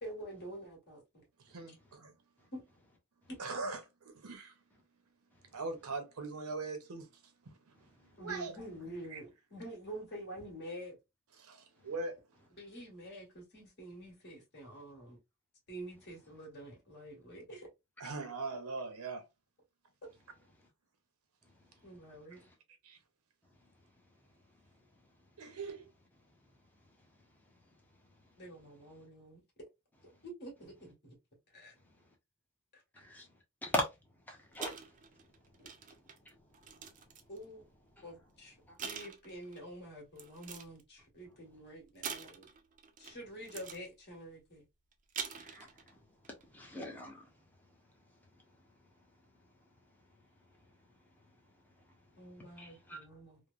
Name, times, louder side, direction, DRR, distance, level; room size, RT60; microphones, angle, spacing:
voice 1, 0.0-1.2 2.5-2.6 3.3-3.4 8.2-11.0 12.6-15.2 15.7-17.7 20.0-20.1 21.8-22.4 28.4-29.4 30.2-31.2 31.5-31.7 32.7-32.8 35.6-35.7 37.3-37.6 38.0-42.5 43.0-44.6 52.1-53.4, right 1 dB, 50° left, 1.4 m, -47 dB
voice 2, 1.5-2.1 3.4-4.5 5.5-7.1 7.5-7.6 8.2-8.5 9.1-9.2 11.4-12.2 18.0-19.2 22.8-23.0 25.4-25.8, right 3 dB, 75° right, 0.7 m, -41 dB
voice 3, 34.3-34.7 45.4-45.7 46.5-47.2 52.6-53.0, equal, 10° left, 0.6 m, -37 dB
sound 1, 34.5-37.4 38.2-38.4 38.8-39.6 40.2-40.8 42.0-43.2 43.4-43.9 44.9-45.9 46.2-46.4, right 6 dB, 35° right, 0.4 m, -44 dB
3.0 x 2.0 x 2.4 m
head